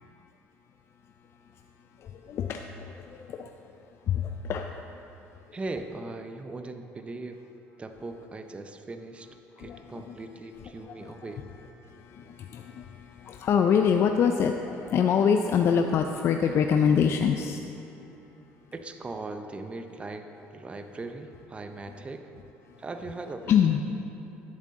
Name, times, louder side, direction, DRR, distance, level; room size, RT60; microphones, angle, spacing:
voice 1, 2.0-2.6 3.1-3.5 4.1-4.7 9.7-9.8 11.0-11.1 11.9-17.6 23.5-23.8, left 7 dB, 50° left, 5 dB, 0.4 m, -25 dB
voice 2, 5.5-7.4 7.8-11.4 18.7-22.3 22.8-23.6, right 2 dB, 20° right, 7 dB, 0.6 m, -39 dB
11.5 x 7.5 x 3.7 m, 2.9 s
supercardioid pair, 90°, 5 cm